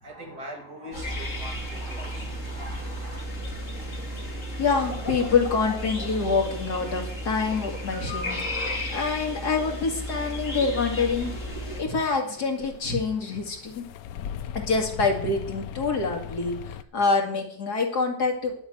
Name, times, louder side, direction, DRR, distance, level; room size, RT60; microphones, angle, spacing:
voice 1, 0.0-3.2, equal, 65° right, 2 dB, 3.0 m, -42 dB
sound 1, 0.9-11.8, equal, 45° left, 2.9 m, -33 dB
voice 2, 4.6-13.9 14.5-18.5, left 4 dB, 65° left, 2 dB, 2.6 m, -26 dB
sound 2, 11.0-16.8, left 9 dB, 80° left, 1.3 m, -40 dB
11.0 x 6.0 x 9.0 m, 0.63 s
omnidirectional pair, 1.9 m